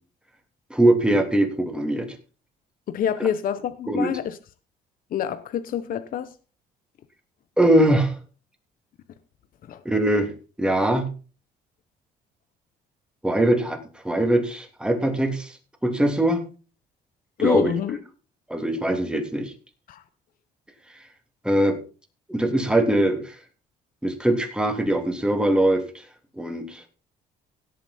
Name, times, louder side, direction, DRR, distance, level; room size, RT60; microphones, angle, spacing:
voice 1, 0.7-2.1 3.9-4.2 7.6-8.1 9.8-10.3 10.6-11.1 13.2-13.8 14.0-15.5 15.8-16.4 17.4-17.7 18.5-19.5 21.4-21.8 22.3-23.3 24.0-25.8 26.4-26.8, right 1 dB, 5° right, 3.2 m, -21 dB
voice 2, 2.9-4.4 5.1-6.3 9.7-9.8 17.4-18.0 19.9-20.0, left 9 dB, 55° left, 1.0 m, -27 dB
17.5 x 7.3 x 4.3 m
cardioid pair, 110°, 17 cm